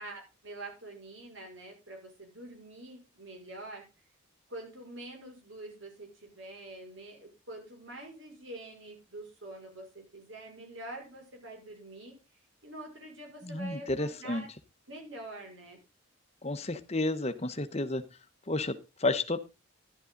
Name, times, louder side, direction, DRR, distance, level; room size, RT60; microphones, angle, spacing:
voice 1, 0.0-3.9 4.5-12.2 12.6-14.5 14.9-15.8, right 2 dB, 70° right, 2 dB, 5.6 m, -46 dB
voice 2, 13.4-14.4 16.4-18.0 18.5-19.4, left 2 dB, 30° left, 10 dB, 1.0 m, -31 dB
11.5 x 11.0 x 3.9 m, 0.28 s
head